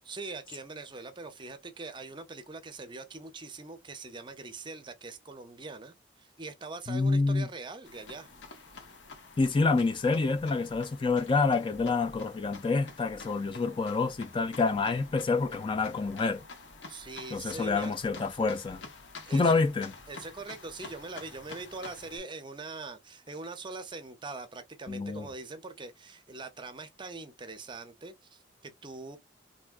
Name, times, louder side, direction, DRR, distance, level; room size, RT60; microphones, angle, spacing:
voice 1, 0.0-8.3 16.9-18.0 19.3-19.6 20.1-29.2, right 3 dB, 25° right, 0.5 m, -42 dB
voice 2, 6.9-7.5 9.4-16.4 17.3-18.8 19.3-19.9 24.9-25.3, left 4 dB, 30° left, 0.4 m, -27 dB
sound 1, 7.8-22.2, left 3 dB, 80° left, 0.9 m, -48 dB
3.4 x 2.7 x 2.4 m
head